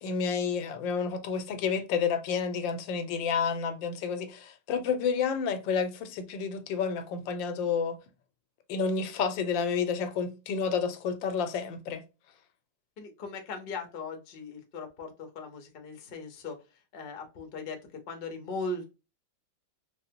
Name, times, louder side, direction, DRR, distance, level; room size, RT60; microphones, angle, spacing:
voice 1, 0.0-8.0 8.7-12.0, left 6 dB, 90° left, 1.3 m, -30 dB
voice 2, 13.0-16.6 16.9-17.8 18.1-18.9, left 3 dB, 60° left, 0.6 m, -38 dB
3.8 x 2.0 x 2.7 m
omnidirectional pair, 2.0 m